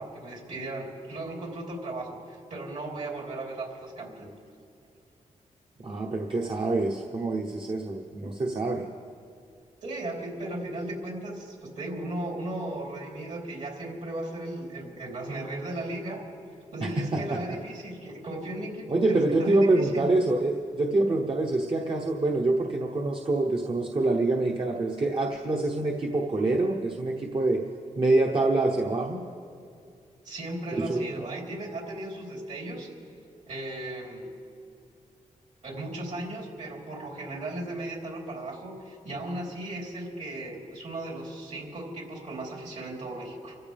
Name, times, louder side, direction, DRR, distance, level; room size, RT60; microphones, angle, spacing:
voice 1, 0.0-4.3 8.2-8.3 9.8-16.2 16.7-20.1 30.2-32.9 33.5-34.3 35.6-43.6, right 1 dB, 60° right, -2 dB, 3.8 m, -36 dB
voice 2, 5.8-8.8 16.8-17.6 18.9-27.6 28.0-29.2 30.7-31.1, right 2 dB, 40° right, 0 dB, 1.0 m, -26 dB
26.5 x 14.5 x 3.5 m, 2.4 s
cardioid pair, 100°, 14 cm